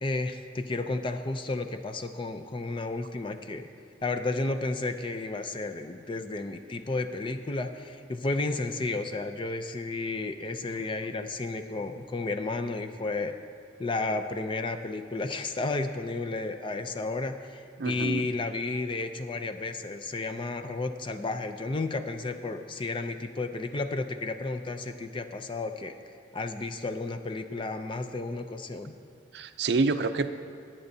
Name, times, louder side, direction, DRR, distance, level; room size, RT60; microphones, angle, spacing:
voice 1, 0.0-3.7 4.0-13.3 13.8-26.0 26.3-29.0, left 3 dB, 30° left, 8 dB, 0.5 m, -32 dB
voice 2, 17.8-18.3 29.3-30.3, right 3 dB, 65° right, 10 dB, 0.5 m, -27 dB
21.5 x 8.8 x 2.7 m, 2.3 s
head